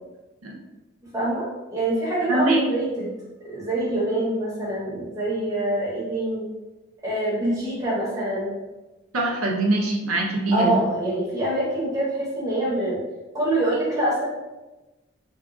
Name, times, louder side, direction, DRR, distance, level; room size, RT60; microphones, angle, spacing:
voice 1, 1.1-6.5 7.0-8.5 10.5-13.0 13.3-14.3, right 1 dB, 15° right, -8 dB, 0.9 m, -25 dB
voice 2, 2.3-2.6 9.1-10.8, right 2 dB, 85° right, -1 dB, 0.7 m, -23 dB
2.7 x 2.4 x 3.7 m, 1.1 s
head